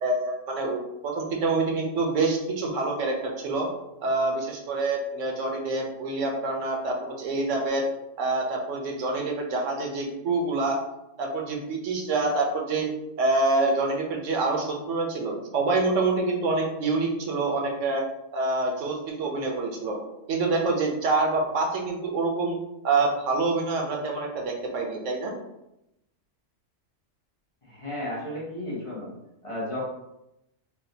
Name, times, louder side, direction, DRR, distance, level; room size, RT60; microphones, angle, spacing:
voice 1, 0.0-3.7 4.0-7.8 8.2-10.8 11.2-12.9 13.2-18.0 18.3-20.0 20.3-22.6 22.8-25.3, right 3 dB, 85° right, 1 dB, 1.0 m, -26 dB
voice 2, 27.7-29.1 29.4-29.8, left 1 dB, 30° left, -6 dB, 0.8 m, -33 dB
3.6 x 2.4 x 2.7 m, 0.87 s
omnidirectional pair, 1.3 m